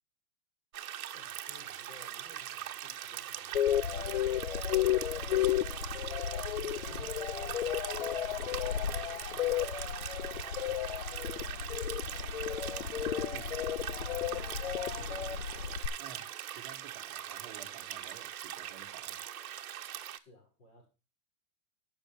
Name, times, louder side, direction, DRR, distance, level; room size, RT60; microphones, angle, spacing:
sound 1, 0.7-20.2, right 11 dB, 60° right, 1.3 m, -42 dB
voice 1, 1.0-6.1 6.5-12.1 20.2-20.9, left 2 dB, 30° left, 6.1 m, -59 dB
sound 2, 3.5-15.9, left 10 dB, 45° left, 0.8 m, -33 dB
voice 2, 13.9-14.6 14.9-15.4 16.0-19.3, right 8 dB, 30° right, 1.8 m, -53 dB
19.0 x 6.4 x 3.6 m
supercardioid pair, 180°, 47 cm